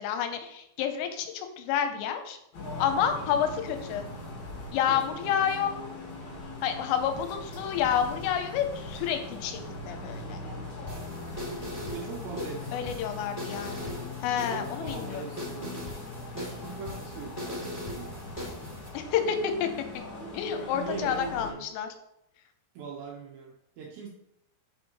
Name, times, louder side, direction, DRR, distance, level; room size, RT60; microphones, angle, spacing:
voice 1, 0.0-2.4 2.8-4.1 4.7-5.9 6.6-10.4 12.7-14.0 14.2-15.2 18.9-19.9 20.3-21.9, left 8 dB, 85° left, 7 dB, 3.2 m, -29 dB
sound 1, 2.5-21.5, left 2 dB, 60° left, 1.9 m, -40 dB
voice 2, 4.9-5.5 10.2-10.8 11.9-13.0 13.8-14.0 14.4-15.8 16.3-18.2 20.7-21.7 22.8-24.1, right 5 dB, 80° right, -1 dB, 2.5 m, -41 dB
sound 2, 10.9-18.9, left 1 dB, 10° left, 1.6 m, -40 dB
8.9 x 6.7 x 3.0 m, 0.81 s
omnidirectional pair, 6.0 m